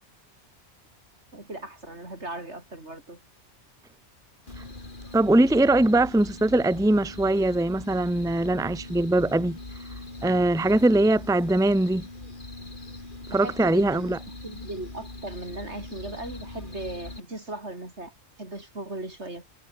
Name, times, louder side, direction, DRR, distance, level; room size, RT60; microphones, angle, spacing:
voice 1, 1.3-3.2 13.3-14.1 14.4-19.4, right 2 dB, 80° right, 6.0 m, -38 dB
sound 1, 4.5-17.2, left 2 dB, 45° left, 3.5 m, -41 dB
voice 2, 5.1-9.6 10.2-12.0 13.3-14.2, right 2 dB, 5° right, 0.9 m, -21 dB
omnidirectional pair, 1.2 m